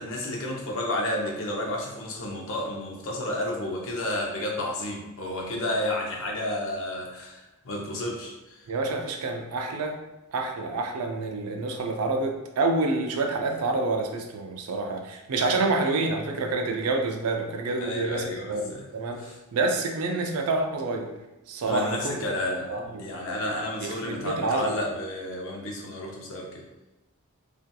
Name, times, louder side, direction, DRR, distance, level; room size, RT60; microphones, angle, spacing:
voice 1, 0.0-8.6 17.8-18.8 19.2-19.4 21.7-22.7 23.0-26.6, left 1 dB, 65° left, 0 dB, 0.6 m, -31 dB
voice 2, 8.7-10.0 10.3-21.1 21.5-22.4 22.7-23.1 23.8-24.8, right 3 dB, 80° right, 3 dB, 0.4 m, -28 dB
2.7 x 2.4 x 2.2 m, 1.0 s
head